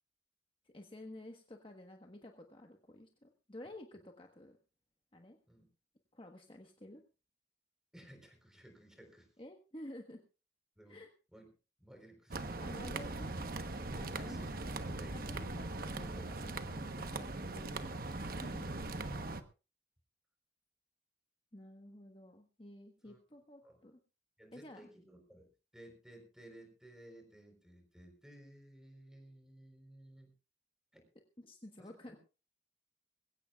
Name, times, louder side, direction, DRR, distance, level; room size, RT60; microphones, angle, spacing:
voice 1, 0.6-4.6 5.1-5.4 6.1-7.0 9.4-10.2 10.9-11.1 12.6-13.3 14.0-14.6 15.1-17.7 18.4-18.8 21.5-24.0 24.5-24.8 31.4-32.2, left 1 dB, 30° left, 3 dB, 1.3 m, -52 dB
voice 2, 7.9-9.3 10.8-11.0 11.3-11.5 11.8-12.7 13.9-15.2 23.0-23.2 23.6-23.8 24.4-30.3 30.9-31.1 31.8-32.2, right 1 dB, 5° right, 4 dB, 4.1 m, -57 dB
sound 1, 12.3-19.4, right 2 dB, 50° right, 1.1 m, -40 dB
21.5 x 16.5 x 2.4 m, 0.33 s
head